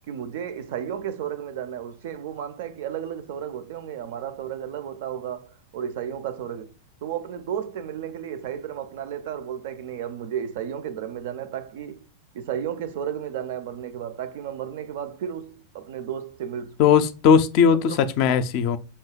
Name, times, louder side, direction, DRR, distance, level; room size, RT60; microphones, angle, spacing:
voice 1, 0.1-6.7 7.0-12.1 12.3-16.9 17.8-18.0, right 9 dB, 55° right, 0.4 m, -33 dB
voice 2, 16.8-18.8, left 7 dB, 45° left, 0.4 m, -18 dB
5.5 x 2.7 x 2.2 m
figure-of-eight pair, 90°, 0 cm